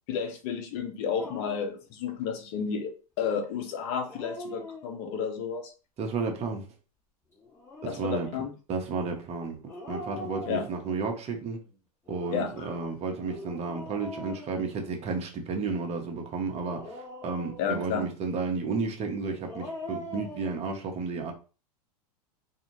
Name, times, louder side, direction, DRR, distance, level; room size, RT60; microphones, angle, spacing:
voice 1, 0.1-5.7 7.8-8.5 10.5-10.6 12.3-12.8 17.6-18.1, left 6 dB, 50° left, 0.7 m, -32 dB
Dog, 1.2-1.8 3.9-5.3 7.4-8.1 9.7-11.1 12.1-15.2 16.5-17.9 19.2-20.6, left 1 dB, 10° left, 1.4 m, -43 dB
voice 2, 6.0-6.6 7.9-8.3 8.7-11.6 12.1-21.3, right 4 dB, 30° right, 0.8 m, -32 dB
2.6 x 2.4 x 3.0 m
hypercardioid pair, 100°, 21 cm